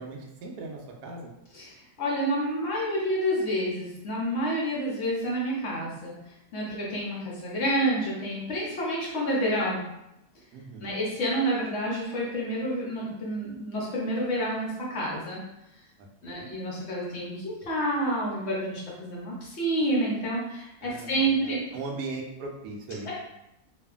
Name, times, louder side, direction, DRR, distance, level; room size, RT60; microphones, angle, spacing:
voice 1, 0.0-1.3 10.5-10.9 16.0-16.5 20.8-23.1, right 3 dB, 80° right, 0 dB, 1.1 m, -39 dB
voice 2, 1.5-6.1 6.5-9.8 10.8-15.4 16.2-21.6 23.0-23.1, right 1 dB, 60° left, -5 dB, 0.7 m, -29 dB
2.7 x 2.4 x 2.3 m, 0.88 s
omnidirectional pair, 1.8 m